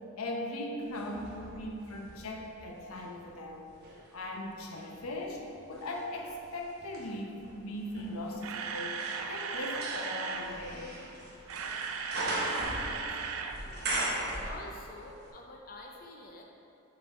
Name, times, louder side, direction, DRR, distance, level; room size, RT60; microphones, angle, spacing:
voice 1, 0.2-3.7 4.1-9.0 9.3-10.9, left 1 dB, 90° left, 1 dB, 0.7 m, -39 dB
sound 1, 0.9-3.1 3.7-15.0 15.3-15.4, right 2 dB, 50° right, 1.0 m, -39 dB
Camera, 8.1-10.5 11.3-13.6 13.8-14.0 14.5-14.6, right 5 dB, 75° right, 0.4 m, -37 dB
voice 2, 12.3-13.9 14.4-16.4, left 2 dB, 40° left, 0 dB, 0.5 m, -47 dB
6.7 x 3.9 x 4.2 m, 2.9 s
head